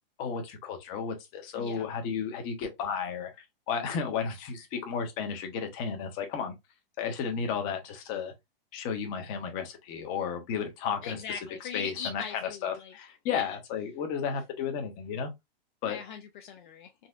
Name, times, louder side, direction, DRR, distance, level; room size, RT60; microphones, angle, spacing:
voice 1, 0.2-3.3 3.7-6.5 7.0-8.3 8.7-11.2 11.7-15.3 15.8-16.0, left 6 dB, 30° left, 0.9 m, -33 dB
voice 2, 11.0-12.9 13.3-13.6 15.8-16.9, left 6 dB, 55° left, 0.6 m, -40 dB
4.0 x 2.2 x 2.4 m
hypercardioid pair, 155°, 30 cm